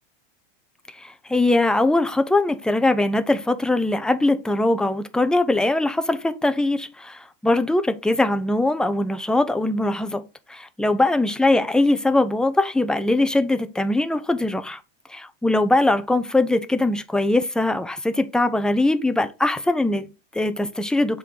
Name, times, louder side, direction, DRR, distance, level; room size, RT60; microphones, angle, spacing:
voice 1, 1.0-10.2 10.5-14.8 15.1-21.2, left 2 dB, ahead, 0.5 m, -21 dB
7.3 x 3.7 x 3.9 m
supercardioid pair, 130°, 30 cm